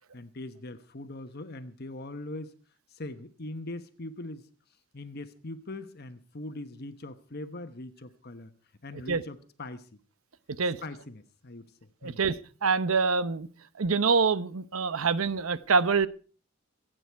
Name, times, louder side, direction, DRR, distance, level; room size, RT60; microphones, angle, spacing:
voice 1, 0.1-2.5 2.9-4.5 4.9-8.5 8.8-9.9 10.8-11.7 12.0-12.2, left 2 dB, 50° left, 1.1 m, -41 dB
voice 2, 12.0-13.5 13.8-16.1, right 5 dB, 85° right, 0.8 m, -25 dB
26.5 x 9.0 x 4.6 m
head